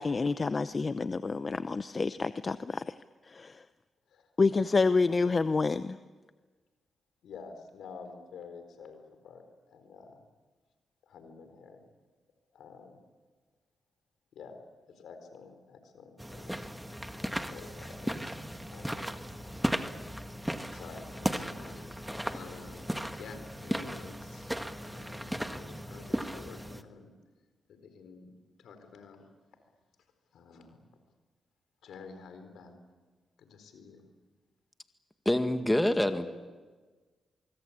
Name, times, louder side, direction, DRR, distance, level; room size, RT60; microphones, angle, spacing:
voice 1, 0.0-2.9 3.2-3.6 4.4-6.0, left 4 dB, 40° left, 13 dB, 0.7 m, -28 dB
voice 2, 7.2-10.2 11.0-11.8 12.5-13.0 14.3-14.6 14.9-16.7 17.5-18.4 18.7-19.2 20.5-24.5 24.8-27.1 27.8-28.3 28.6-29.3 30.3-30.9 31.8-32.8 33.4-34.0, left 5 dB, 80° left, 8 dB, 4.2 m, -50 dB
sound 1, 16.2-26.8, equal, 5° right, 1.7 m, -36 dB
voice 3, 35.3-36.3, left 1 dB, 10° left, 7 dB, 2.0 m, -26 dB
24.5 x 23.5 x 8.6 m, 1.4 s
cardioid pair, 60°, 0 cm